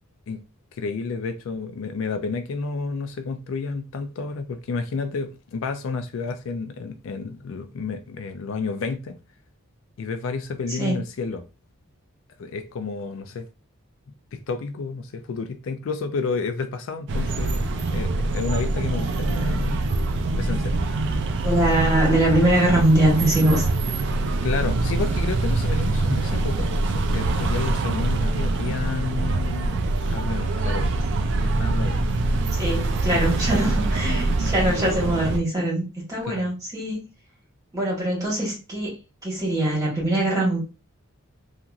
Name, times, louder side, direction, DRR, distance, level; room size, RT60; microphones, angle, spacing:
voice 1, 0.7-9.2 10.0-11.4 12.4-13.5 14.3-19.8 20.3-20.7 24.4-29.8 30.1-30.9 31.3-32.1 36.2-36.4, left 4 dB, 65° left, 0.3 m, -30 dB
voice 2, 10.7-11.0 21.4-23.6 32.5-37.0 37.7-39.0 39.2-40.6, right 1 dB, 15° right, 1.4 m, -22 dB
sound 1, 17.1-35.4, right 2 dB, 55° right, 0.3 m, -24 dB
2.9 x 2.4 x 2.4 m
head